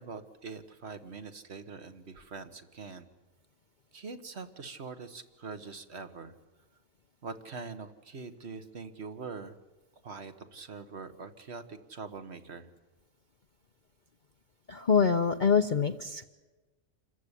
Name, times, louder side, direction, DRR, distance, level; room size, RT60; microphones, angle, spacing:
voice 1, 0.0-3.1 3.9-6.3 7.2-9.5 10.0-12.7, right 4 dB, 50° right, 10 dB, 1.7 m, -43 dB
voice 2, 14.7-16.2, left 6 dB, 40° left, 6 dB, 0.9 m, -25 dB
27.5 x 14.5 x 10.0 m, 1.2 s
omnidirectional pair, 1.4 m